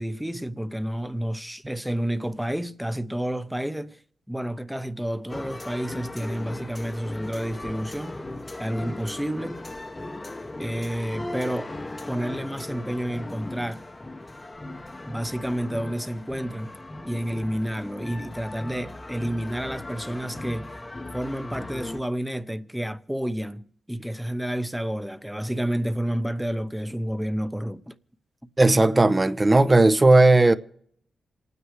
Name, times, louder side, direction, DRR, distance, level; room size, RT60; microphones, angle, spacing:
voice 1, 0.0-4.0 4.3-8.2 8.6-9.6 10.6-11.7 12.1-13.8 15.1-16.7 17.1-20.7 21.1-27.9, equal, 5° right, 0.9 m, -30 dB
sound 1, 5.3-22.0, left 2 dB, 25° left, 0.9 m, -38 dB
voice 2, 28.6-30.5, right 2 dB, 25° right, 0.8 m, -16 dB
28.0 x 9.6 x 3.3 m
cardioid pair, 75°, 0 cm